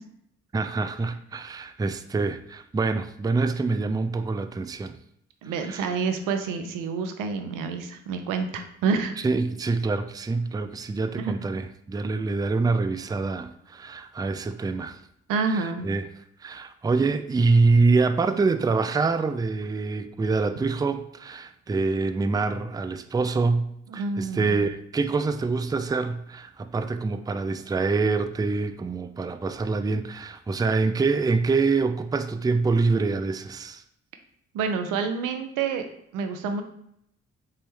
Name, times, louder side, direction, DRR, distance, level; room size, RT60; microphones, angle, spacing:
voice 1, 0.5-5.0 5.6-5.9 9.2-15.0 15.5-16.1 16.4-33.8, right 3 dB, 15° right, 0.4 m, -25 dB
voice 2, 5.4-9.2 11.2-11.3 15.3-15.9 23.9-24.6 34.5-35.8 36.1-36.6, right 5 dB, 90° right, 0.6 m, -28 dB
3.9 x 3.7 x 3.3 m
supercardioid pair, 50°, 31 cm